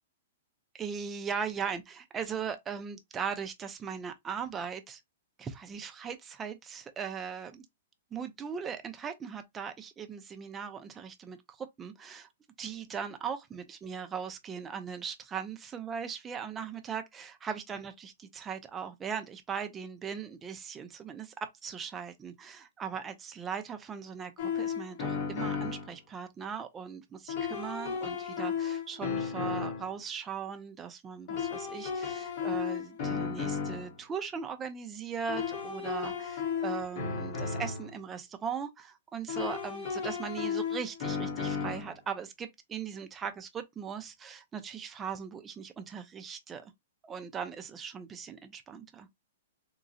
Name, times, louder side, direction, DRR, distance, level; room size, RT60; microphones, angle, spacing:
voice 1, 0.7-5.0 5.4-7.6 8.1-12.3 12.6-21.3 21.6-46.7 47.0-49.1, right 7 dB, 10° right, 0.4 m, -39 dB
sound 1, 24.4-25.9 27.3-29.9 31.3-34.0 35.3-37.9 39.3-41.9, left 6 dB, 35° left, 0.8 m, -34 dB
3.7 x 2.0 x 2.5 m
hypercardioid pair, 175°, 0 cm